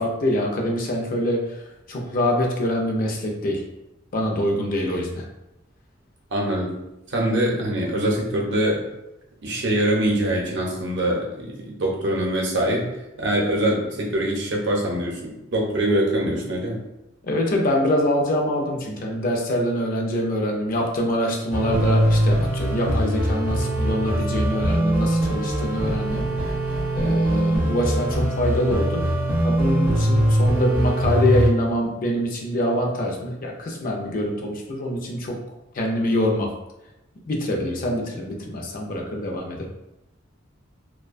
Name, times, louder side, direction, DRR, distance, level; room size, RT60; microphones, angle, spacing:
voice 1, 0.0-1.6 1.9-3.6 4.1-5.2 17.2-26.3 26.9-29.0 29.4-35.4 35.7-36.5 37.3-39.7, left 1 dB, 45° left, 0 dB, 0.4 m, -24 dB
voice 2, 6.3-8.8 9.4-12.9 13.2-16.8, right 1 dB, 65° right, -2 dB, 0.6 m, -24 dB
sound 1, 21.5-31.5, right 1 dB, 10° right, 0.5 m, -22 dB
2.5 x 2.1 x 2.4 m, 0.94 s
head